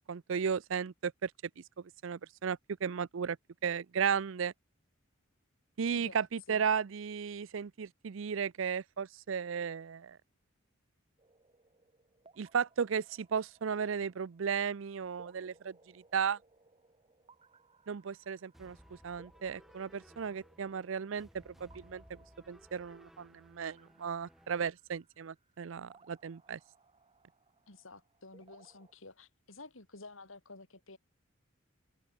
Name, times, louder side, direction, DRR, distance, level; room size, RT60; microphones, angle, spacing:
voice 1, 0.1-1.3 1.6-3.4 3.6-4.5 5.8-10.2 12.4-16.4 17.9-18.8 19.0-22.2 22.5-26.6, right 6 dB, 70° right, 0.5 m, -35 dB
voice 2, 5.9-6.6 27.7-31.0, left 3 dB, 75° left, 3.6 m, -52 dB
sound 1, 11.2-28.9, right 3 dB, 30° right, 1.6 m, -65 dB
sound 2, 18.5-24.5, equal, ahead, 3.4 m, -60 dB
head